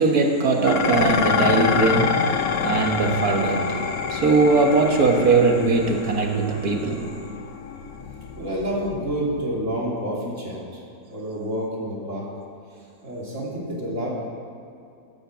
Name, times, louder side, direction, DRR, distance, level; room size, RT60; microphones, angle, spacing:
voice 1, 0.0-7.3, right 3 dB, 70° right, 3 dB, 1.9 m, -20 dB
Dishes pots and pans, 0.6-9.5, left 6 dB, 70° left, 1.2 m, -27 dB
voice 2, 8.4-10.8 11.1-12.3 13.0-14.1, equal, 50° right, -5 dB, 3.4 m, -28 dB
15.5 x 8.9 x 6.3 m, 2.6 s
omnidirectional pair, 1.7 m